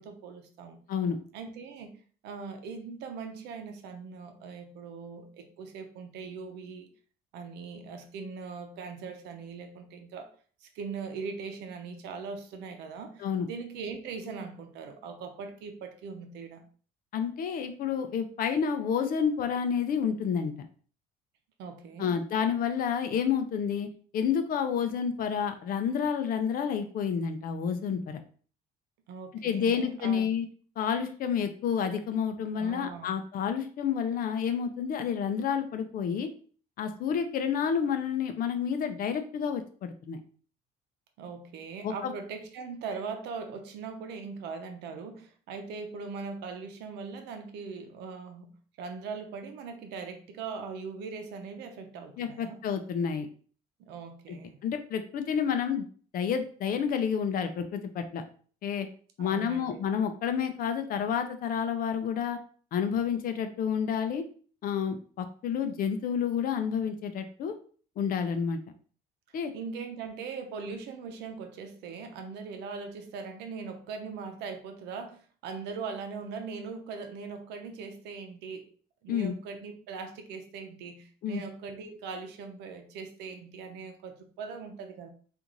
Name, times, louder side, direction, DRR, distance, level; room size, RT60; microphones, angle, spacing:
voice 1, 0.0-0.8 1.3-1.9 2.2-6.9 7.3-10.3 10.6-16.6 21.6-22.2 29.1-30.3 32.6-33.1 41.2-52.6 53.8-54.6 59.2-59.8 69.3-78.7 79.0-85.1, right 5 dB, 85° right, 6 dB, 0.7 m, -40 dB
voice 2, 17.1-20.5 22.0-23.9 24.1-28.2 29.4-30.5 30.8-36.3 36.8-40.2 41.8-42.1 52.2-53.3 54.3-54.4 54.6-55.9 56.1-58.2 58.6-58.9 59.2-62.4 62.7-64.2 64.6-67.5 68.0-68.6 69.3-69.5 79.1-79.3 81.2-81.4, left 7 dB, 55° left, 7 dB, 0.5 m, -29 dB
3.0 x 2.5 x 3.7 m, 0.43 s
cardioid pair, 110°, 17 cm